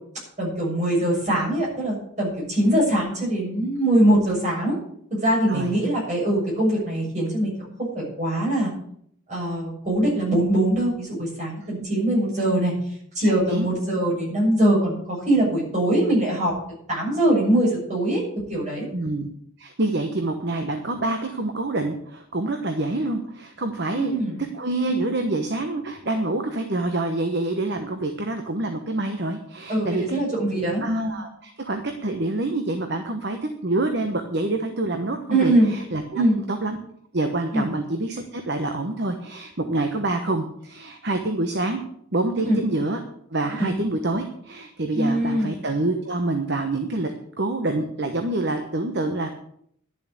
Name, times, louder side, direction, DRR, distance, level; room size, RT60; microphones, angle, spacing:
voice 1, 0.4-4.8 5.1-7.5 7.8-8.7 9.3-12.7 13.2-16.5 16.9-18.2 18.5-18.9 23.9-24.4 29.7-30.8 35.3-35.7 36.1-36.4 37.5-37.7 42.4-42.6 43.6-43.7 44.9-45.5, right 1 dB, 35° right, -4 dB, 6.9 m, -22 dB
voice 2, 13.2-13.7 18.9-19.3 19.6-24.2 24.5-30.2 30.8-36.2 36.5-36.8 37.1-41.8 42.1-43.0 43.3-47.1 47.4-49.3, right 2 dB, 50° right, 6 dB, 1.2 m, -26 dB
11.5 x 7.3 x 8.5 m, 0.67 s
head